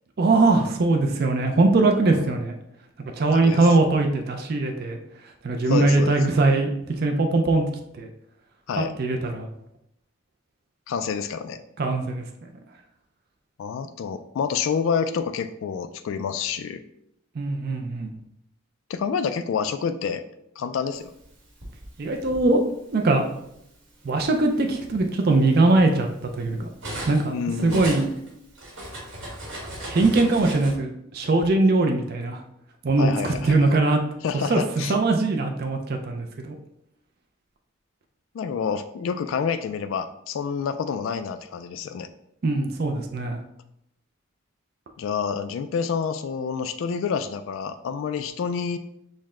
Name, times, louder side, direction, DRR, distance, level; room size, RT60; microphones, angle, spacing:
voice 1, 0.2-2.5 3.2-5.0 5.4-6.7 7.0-7.6 8.0-8.1 8.8-9.5 11.8-12.3 17.4-18.1 22.0-22.6 22.9-23.2 24.0-26.7 27.1-27.4 27.6-28.1 29.9-32.4 32.8-34.0 34.5-34.6 34.9-36.6 42.4-43.4, right 2 dB, 50° right, 3 dB, 0.4 m, -21 dB
voice 2, 2.1-2.4 3.3-3.8 5.7-6.2 8.7-8.9 10.9-11.6 13.6-16.8 18.9-20.2 20.6-21.1 27.3-28.0 33.0-33.8 34.2-35.0 38.3-42.1 45.0-48.8, left 6 dB, 75° left, 10 dB, 0.3 m, -28 dB
Cutlery silverware, 21.2-22.5 23.4-23.6 24.0-27.3 27.6-30.7, right 1 dB, 75° right, 1.6 m, -37 dB
6.4 x 2.1 x 3.6 m, 0.77 s
head